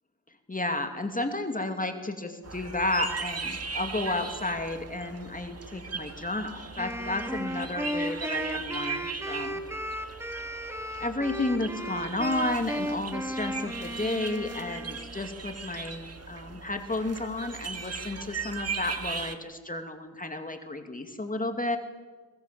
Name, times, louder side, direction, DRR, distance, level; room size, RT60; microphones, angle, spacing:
voice 1, 0.5-9.6 11.0-21.8, left 2 dB, 20° left, 6 dB, 2.6 m, -32 dB
sound 1, 2.4-19.3, right 5 dB, 35° right, 2.0 m, -38 dB
Wind instrument woodwind instrument, 6.8-15.2, equal, 5° right, 2.2 m, -35 dB
22.5 x 21.5 x 7.6 m, 1.4 s
cardioid pair, 85°, 44 cm